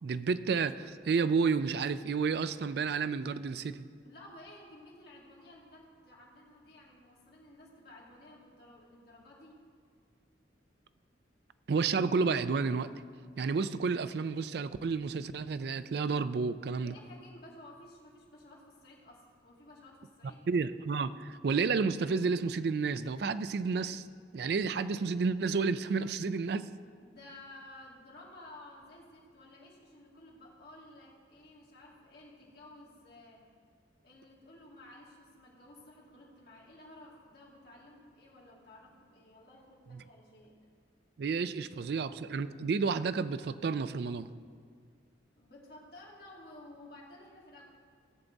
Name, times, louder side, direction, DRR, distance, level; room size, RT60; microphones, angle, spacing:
voice 1, 0.0-3.8 11.7-12.9 13.4-16.9 20.5-24.1 24.3-26.7 41.2-44.3, right 5 dB, 60° right, 13 dB, 0.4 m, -31 dB
voice 2, 4.0-9.6 16.8-20.4 27.0-33.4 34.0-40.5 41.9-42.1 45.4-47.7, left 1 dB, 55° left, -4 dB, 2.5 m, -54 dB
16.0 x 7.1 x 4.0 m, 2.1 s
head